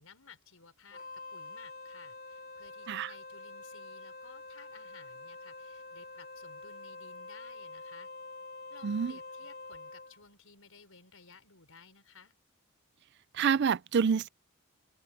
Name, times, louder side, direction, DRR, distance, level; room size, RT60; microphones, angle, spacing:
voice 1, 0.0-8.1 8.7-12.3, left 5 dB, 70° left, 5.7 m, -57 dB
Wind instrument woodwind instrument, 0.9-10.2, left 3 dB, 45° left, 3.6 m, -46 dB
voice 2, 13.3-14.3, right 6 dB, 50° right, 0.4 m, -27 dB
open air
head